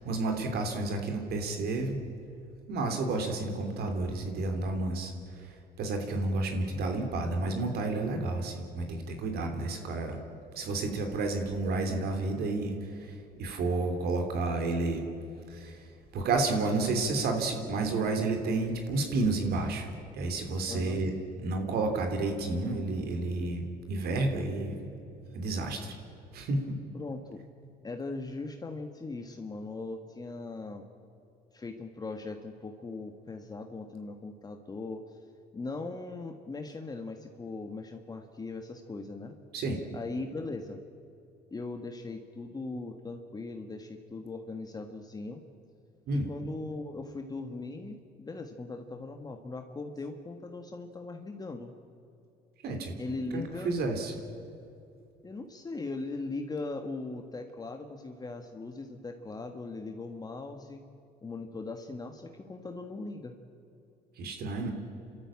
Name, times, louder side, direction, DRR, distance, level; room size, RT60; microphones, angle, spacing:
voice 1, 0.0-2.0 2.7-10.2 10.5-15.0 15.5-15.9 16.1-19.9 20.1-21.1 21.4-24.9 25.3-25.9 26.3-26.7 39.5-39.8 46.1-46.3 52.6-52.9 53.3-54.1 64.2-64.7, right 2 dB, 70° right, 4 dB, 3.2 m, -31 dB
voice 2, 20.7-21.0 26.9-27.4 27.8-30.8 31.5-35.2 35.5-39.4 39.9-40.8 41.5-45.4 46.1-51.7 53.0-53.7 55.2-60.8 61.2-63.3, left 3 dB, 25° left, 5 dB, 1.5 m, -39 dB
28.5 x 13.5 x 8.8 m, 2.7 s
cardioid pair, 110°, 17 cm